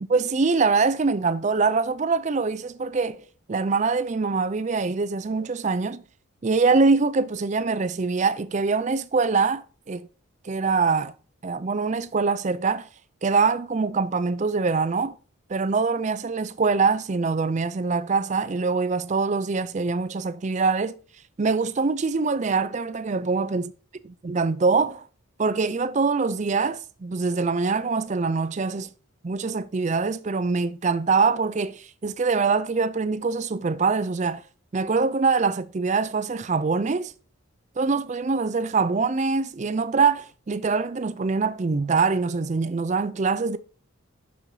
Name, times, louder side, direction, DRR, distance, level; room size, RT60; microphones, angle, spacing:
voice 1, 0.0-6.0 6.4-10.1 10.4-11.1 11.4-12.9 13.2-15.2 15.5-20.9 21.4-23.7 24.2-25.1 25.4-28.9 29.2-34.4 34.7-37.1 37.8-43.6, right 4 dB, 35° right, 0.4 m, -24 dB
6.7 x 6.2 x 2.7 m
head